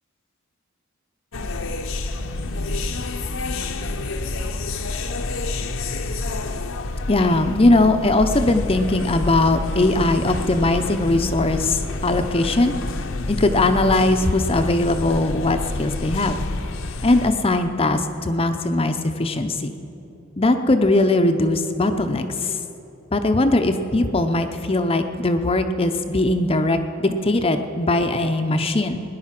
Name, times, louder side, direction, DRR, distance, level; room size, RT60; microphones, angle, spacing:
sound 1, 1.3-17.3, left 2 dB, 65° left, 0.8 m, -28 dB
voice 1, 7.1-12.7 13.3-16.4 17.0-19.7 20.4-22.6 23.1-29.0, left 2 dB, 25° left, 7 dB, 0.6 m, -20 dB
18.0 x 10.5 x 5.9 m, 2.9 s
head